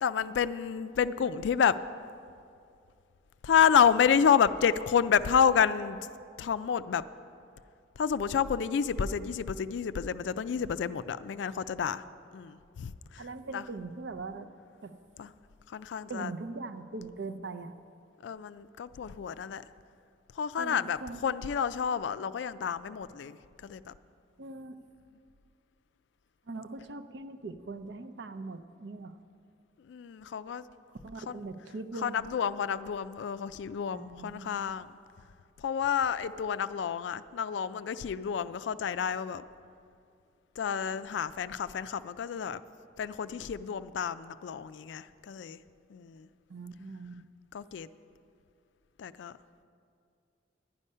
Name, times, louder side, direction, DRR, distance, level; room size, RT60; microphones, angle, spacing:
voice 1, 0.0-1.7 3.4-6.0 6.4-7.0 8.0-12.0 12.3-13.2 13.5-13.6 15.2-15.3 15.7-16.3 18.2-19.6 20.4-23.4 23.6-23.9 29.9-30.6 31.3-31.5 32.0-35.0 35.6-39.4 40.6-42.6 43.0-45.6 45.9-46.3 47.5-47.9 49.0-49.4, left 7 dB, 65° left, 15 dB, 0.3 m, -29 dB
voice 2, 13.2-14.5 14.8-15.0 16.1-17.8 20.6-21.2 24.4-24.8 26.5-29.1 31.0-32.2 33.9-34.6 46.5-47.3, right 3 dB, 65° right, 9 dB, 0.6 m, -41 dB
10.5 x 9.7 x 5.5 m, 2.4 s
head